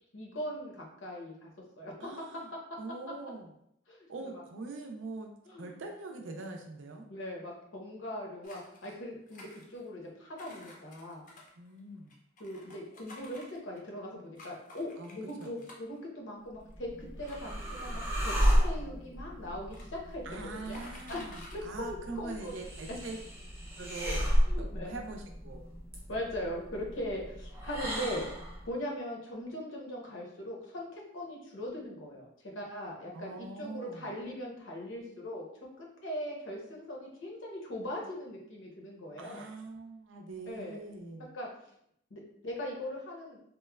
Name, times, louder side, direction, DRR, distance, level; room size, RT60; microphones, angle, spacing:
voice 1, 0.1-1.5 1.8-1.9 3.9-4.0 5.5-5.7 7.1-11.2 12.4-20.4 20.6-20.8 21.1-21.2 21.5-22.5 24.1-24.2 24.5-24.9 26.1-28.3 28.6-32.3 32.5-35.4 35.8-39.4 40.5-40.8 41.3-41.5 42.1-43.4, left 1 dB, 75° left, -1 dB, 0.7 m, -40 dB
voice 2, 2.0-2.5 2.8-3.5 4.1-5.3 5.6-7.1 11.6-12.1 15.0-15.1 15.4-15.6 20.2-23.2 23.8-24.2 24.6-25.7 33.1-34.1 39.2-41.3, right 3 dB, 75° right, 3 dB, 0.4 m, -43 dB
sound 1, 8.4-8.9 9.3-10.0 10.4-13.9 14.3-16.0 16.6-16.7 17.3-18.3 19.1-19.2 19.4-20.1 20.4-21.6 22.1-22.2 22.5-22.8, left 2 dB, 45° left, 0.5 m, -52 dB
sound 2, 16.6-28.7, equal, 15° right, 0.4 m, -33 dB
2.9 x 2.1 x 2.3 m, 0.73 s
head